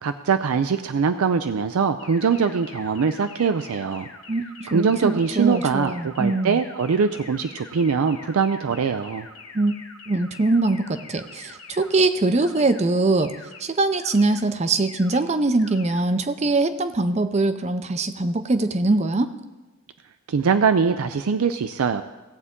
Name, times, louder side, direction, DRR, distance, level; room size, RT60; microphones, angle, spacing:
voice 1, 0.0-4.1 4.7-9.3 20.3-22.0, right 5 dB, 80° right, 9 dB, 0.4 m, -22 dB
sound 1, 2.0-12.0 12.4-12.8 13.2-13.6 14.0-14.4 14.8-15.2 15.6-16.0, left 4 dB, 65° left, 1.5 m, -44 dB
voice 2, 4.7-6.6 9.5-9.7 10.1-13.3 13.6-19.3, right 2 dB, 30° right, 11 dB, 0.5 m, -22 dB
17.0 x 8.1 x 3.6 m, 1.2 s
head